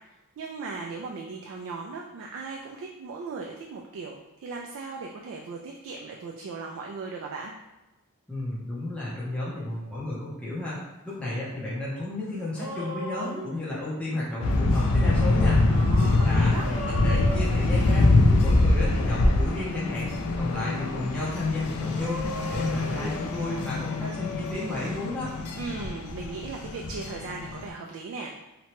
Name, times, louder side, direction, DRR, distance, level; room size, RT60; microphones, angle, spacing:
voice 1, 0.4-7.5 15.7-16.7 25.6-28.3, right 4 dB, 60° right, 0 dB, 0.3 m, -37 dB
voice 2, 8.3-10.8 11.0-15.6 16.2-18.1 18.4-25.3, left 2 dB, 5° left, -8 dB, 0.6 m, -33 dB
sound 1, 12.4-14.2 16.5-18.5 18.8-19.0 21.9-23.1, left 1 dB, 15° right, 0.8 m, -37 dB
sound 2, 14.4-27.7, left 2 dB, 70° left, 0.4 m, -24 dB
2.8 x 2.2 x 2.9 m, 1.0 s
head